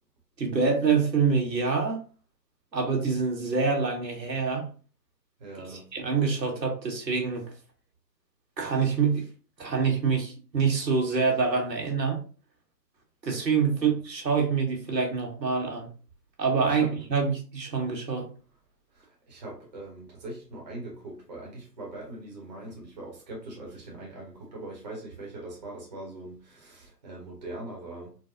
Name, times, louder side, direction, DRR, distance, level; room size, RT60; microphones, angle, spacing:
voice 1, 0.4-2.0 2.7-4.6 5.6-7.4 8.6-9.2 9.6-12.2 13.2-15.9 16.4-18.2, right 5 dB, 85° right, 1.2 m, -26 dB
voice 2, 5.4-5.9 16.7-16.9 18.9-28.1, right 2 dB, 25° right, 0.8 m, -41 dB
3.8 x 2.1 x 2.4 m
figure-of-eight pair, 150°, 49 cm